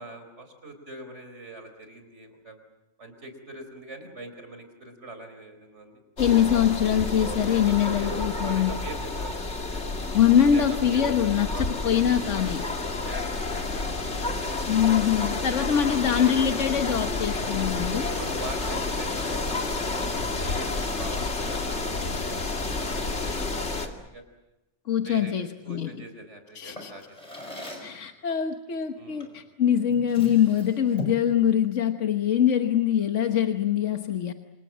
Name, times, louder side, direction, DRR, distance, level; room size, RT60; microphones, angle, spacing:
voice 1, 0.0-2.6 3.0-6.0 7.8-9.8 10.4-12.0 12.6-13.9 18.2-19.6 20.0-24.2 25.0-27.4 29.0-29.3, right 2 dB, 70° right, 7 dB, 4.8 m, -43 dB
voice 2, 6.2-8.7 10.1-12.6 14.7-18.1 24.9-25.9 26.5-26.9 27.8-34.3, left 9 dB, 80° left, 6 dB, 1.5 m, -23 dB
sound 1, 6.2-23.9, left 3 dB, 65° left, 2.7 m, -30 dB
Drawer open or close, 26.7-28.0 29.2-29.4 29.8-31.3, left 1 dB, 30° left, 5.6 m, -39 dB
28.5 x 27.5 x 7.5 m, 0.97 s
omnidirectional pair, 1.2 m